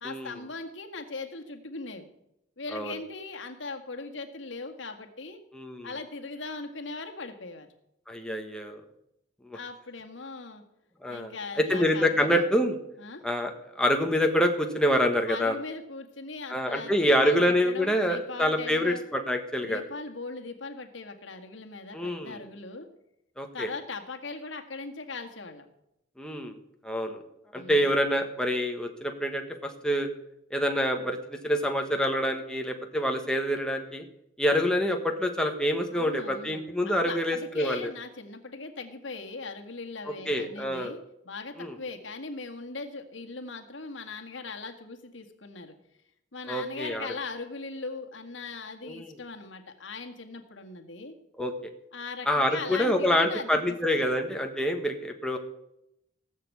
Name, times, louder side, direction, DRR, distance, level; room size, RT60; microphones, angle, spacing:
voice 1, 0.0-2.1 2.6-5.4 5.8-7.7 9.5-10.6 11.1-12.4 13.0-13.2 15.3-19.0 19.6-22.9 23.5-25.7 27.5-28.0 35.9-41.0 41.3-45.7 46.3-51.2 51.9-54.1, left 3 dB, 70° left, 4 dB, 1.9 m, -39 dB
voice 2, 5.5-5.9 8.1-8.8 9.5-9.6 11.0-12.8 13.2-15.5 16.5-19.8 21.9-22.4 23.4-23.7 26.2-26.5 26.8-27.2 27.5-30.1 30.5-34.0 34.4-37.9 40.3-41.0 41.6-41.8 46.5-47.1 48.8-49.1 51.4-51.5 52.3-55.4, equal, 5° left, 3 dB, 1.4 m, -26 dB
17.5 x 6.9 x 8.4 m, 0.80 s
head